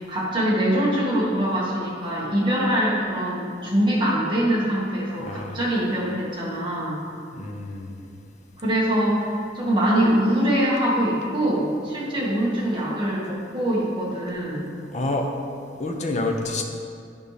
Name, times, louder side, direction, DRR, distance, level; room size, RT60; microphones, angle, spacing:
voice 1, 0.0-7.0 8.6-14.7, right 1 dB, 25° right, -6 dB, 1.6 m, -23 dB
voice 2, 5.2-5.6 7.3-8.1 14.9-15.3 15.8-16.6, left 2 dB, 35° left, 2 dB, 0.6 m, -28 dB
11.0 x 5.3 x 3.3 m, 2.4 s
head